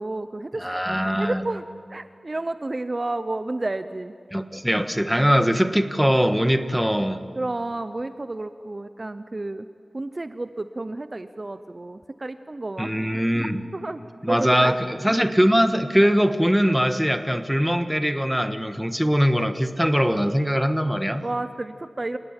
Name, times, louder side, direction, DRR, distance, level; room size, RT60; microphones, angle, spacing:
voice 1, 0.0-0.8 1.2-4.1 5.1-5.3 7.3-9.7 9.9-12.9 13.7-14.0 14.3-14.8 21.2-22.2, right 2 dB, 40° right, 11 dB, 0.7 m, -31 dB
voice 2, 0.6-1.4 4.3-7.2 12.8-13.6 14.2-21.2, equal, 5° right, 8 dB, 1.5 m, -21 dB
28.0 x 19.0 x 9.0 m, 2.1 s
wide cardioid pair, 65°, 0 cm